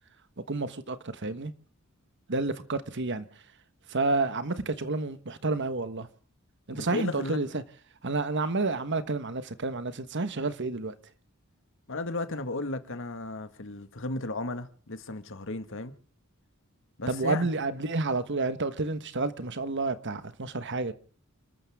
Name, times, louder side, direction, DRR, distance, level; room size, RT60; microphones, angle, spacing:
voice 1, 0.5-1.5 2.3-3.2 3.9-6.1 6.7-7.6 8.0-10.9 17.1-20.9, right 3 dB, 55° right, 1.4 m, -30 dB
voice 2, 6.7-7.4 11.9-15.9 17.0-17.5, left 2 dB, 60° left, 1.8 m, -34 dB
30.0 x 13.5 x 3.6 m
head